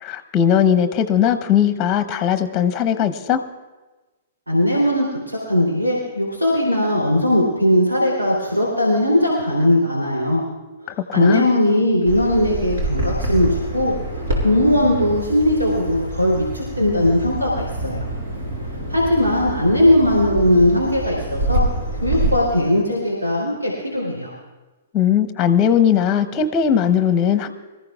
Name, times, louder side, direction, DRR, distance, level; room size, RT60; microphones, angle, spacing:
voice 1, 0.0-3.4 11.1-11.5 24.9-27.5, left 8 dB, 25° left, 10 dB, 0.9 m, -18 dB
voice 2, 4.5-10.4 10.8-18.1 18.9-21.6 22.0-24.3, left 1 dB, 85° right, -5 dB, 3.2 m, -19 dB
Bird vocalization bird call bird song, 12.1-22.3, right 1 dB, 60° right, 4.7 m, -26 dB
25.5 x 14.5 x 2.4 m, 1.2 s
figure-of-eight pair, 110°, 0 cm